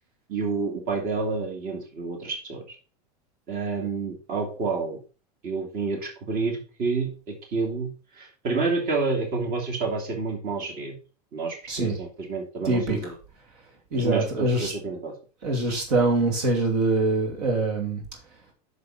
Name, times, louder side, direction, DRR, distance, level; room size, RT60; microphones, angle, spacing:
voice 1, 0.3-2.8 3.5-5.0 5.4-10.9 11.3-13.1 13.9-15.1, right 4 dB, 45° right, 2.7 m, -29 dB
voice 2, 12.6-13.0 13.9-14.7 15.4-18.0, right 2 dB, 80° right, 2.6 m, -24 dB
6.7 x 6.7 x 4.2 m
supercardioid pair, 115°, 20 cm